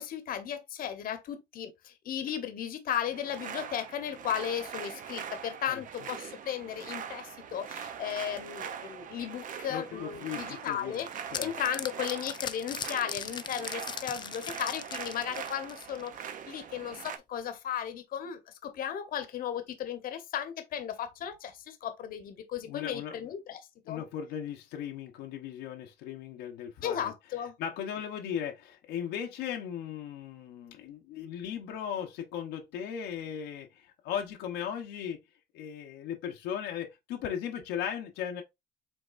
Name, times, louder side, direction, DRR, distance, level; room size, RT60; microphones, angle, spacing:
voice 1, 0.0-11.1 11.4-24.0 26.8-27.5, left 9 dB, 60° left, 1.0 m, -35 dB
sound 1, 3.1-17.2, right 8 dB, 50° right, 0.6 m, -42 dB
voice 2, 9.7-11.0 11.3-11.5 22.7-23.2 23.9-27.1 27.6-35.2 35.5-38.4, left 9 dB, 90° left, 0.9 m, -37 dB
sound 2, 10.6-16.2, left 7 dB, 25° left, 0.4 m, -39 dB
5.6 x 3.5 x 2.5 m
cardioid pair, 110°, 17 cm